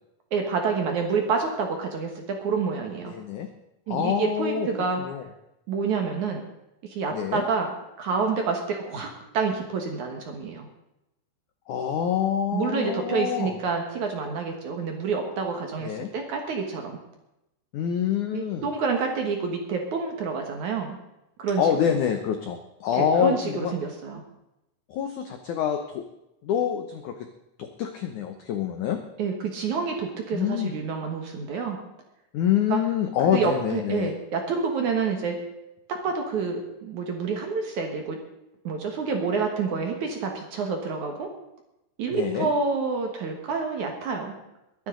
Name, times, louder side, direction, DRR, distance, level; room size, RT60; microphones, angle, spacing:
voice 1, 0.3-3.1 3.9-5.0 5.7-6.4 6.8-7.7 8.0-10.7 12.5-17.0 18.3-21.0 21.4-21.6 22.9-24.2 29.2-31.8 32.7-32.8 33.3-35.4 35.9-38.2 38.6-41.3 42.0-44.3, right 5 dB, 60° right, 3 dB, 2.3 m, -28 dB
voice 2, 3.1-3.5 3.9-4.7 5.0-5.2 7.1-7.4 11.7-13.6 15.8-16.1 17.7-18.7 21.6-23.7 24.9-26.0 26.4-27.2 27.6-29.0 30.3-30.7 32.3-34.1 42.1-42.5, left 9 dB, 90° left, 6 dB, 1.7 m, -26 dB
22.0 x 10.5 x 3.9 m, 0.89 s
omnidirectional pair, 4.9 m